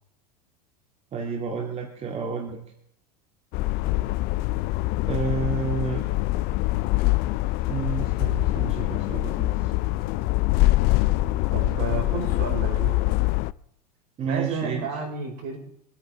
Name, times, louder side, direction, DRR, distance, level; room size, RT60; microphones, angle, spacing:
voice 1, 1.1-2.6 5.0-6.0 7.7-9.7 14.2-14.9, right 6 dB, 30° right, 1 dB, 2.2 m, -30 dB
sound 1, 3.5-13.5, left 18 dB, 45° left, 0.6 m, -24 dB
voice 2, 11.5-13.0 14.2-15.6, right 5 dB, 55° right, 2 dB, 5.7 m, -31 dB
24.0 x 9.1 x 4.7 m, 0.72 s
hypercardioid pair, 100°, 21 cm